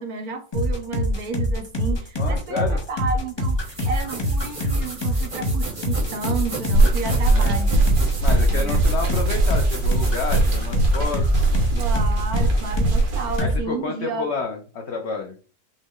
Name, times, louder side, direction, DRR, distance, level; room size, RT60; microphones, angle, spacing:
voice 1, 0.0-7.8 8.5-8.8 11.7-14.3, right 4 dB, 65° right, 6 dB, 1.1 m, -31 dB
sound 1, 0.5-13.1 13.4-13.6, equal, 30° left, 0.5 m, -24 dB
voice 2, 2.2-2.8 7.3-7.7 8.2-11.5 13.2-15.4, left 4 dB, 85° left, 3 dB, 0.6 m, -30 dB
sound 2, 3.5-11.8, right 2 dB, 30° right, 0.7 m, -35 dB
sound 3, 6.7-13.4, right 2 dB, 85° right, 1.8 m, -21 dB
6.0 x 2.0 x 3.6 m, 0.37 s
omnidirectional pair, 1.9 m